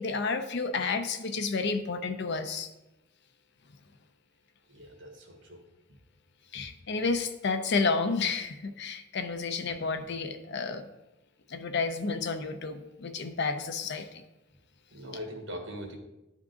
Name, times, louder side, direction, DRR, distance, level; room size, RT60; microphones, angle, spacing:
voice 1, 0.0-2.7 6.5-10.8 11.5-14.2, left 4 dB, 60° left, 9 dB, 0.6 m, -31 dB
voice 2, 4.7-5.6 6.5-6.6 14.9-16.0, equal, 65° right, 2 dB, 1.5 m, -41 dB
10.5 x 3.6 x 3.8 m, 0.94 s
head